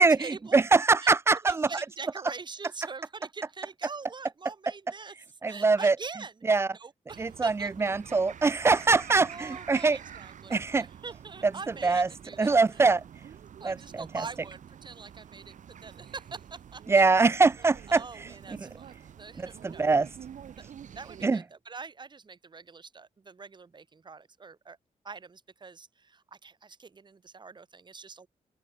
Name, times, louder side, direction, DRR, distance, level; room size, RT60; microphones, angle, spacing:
voice 1, 0.0-0.6 1.0-1.1 1.5-6.4 6.7-7.9 9.3-12.8 13.6-17.0 17.9-19.9 20.5-24.8 25.0-28.3, right 4 dB, 35° right, 5.9 m, -44 dB
voice 2, 0.5-1.7 5.4-5.9 6.5-6.7 7.2-10.0 10.5-10.8 11.8-12.1 12.4-13.0 13.7-13.8 16.9-18.0 19.6-20.1 21.2-21.4, right 4 dB, 20° right, 0.4 m, -22 dB
sound 1, 7.1-21.2, right 8 dB, 65° right, 1.6 m, -48 dB
open air
wide cardioid pair, 150°, 14 cm